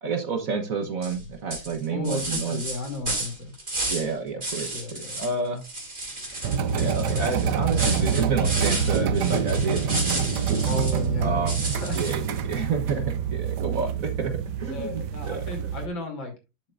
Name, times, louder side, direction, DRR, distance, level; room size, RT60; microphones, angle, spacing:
voice 1, 0.0-2.6 3.9-5.6 6.7-10.3 11.2-11.6 11.9-14.3 14.6-15.7, right 4 dB, 50° right, 6 dB, 1.3 m, -29 dB
sound 1, 1.0-1.2 1.5-4.1 4.4-5.3 5.6-11.1 11.5-12.4, right 2 dB, 25° right, 2.9 m, -32 dB
voice 2, 1.9-3.5 4.7-5.2 10.6-12.2 14.7-16.3, left 2 dB, 80° left, 3 dB, 3.7 m, -34 dB
sound 2, 6.4-15.9, right 7 dB, 65° right, 1.2 m, -26 dB
10.5 x 7.5 x 2.5 m, 0.25 s
omnidirectional pair, 2.1 m